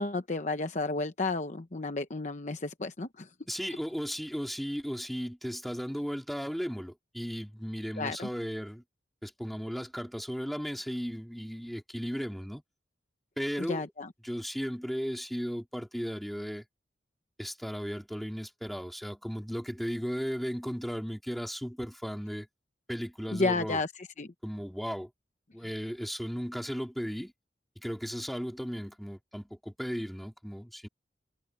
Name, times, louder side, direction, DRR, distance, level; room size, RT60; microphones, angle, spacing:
voice 1, 0.0-3.3 8.0-8.3 13.7-14.1 23.3-23.9 24.2-24.3, left 3 dB, 40° left, 0.9 m, -32 dB
voice 2, 3.5-8.8 9.2-12.6 13.4-13.9 14.2-16.6 17.4-22.5 22.9-23.8 24.4-25.1 25.5-27.3 27.8-30.9, equal, ahead, 4.1 m, -35 dB
head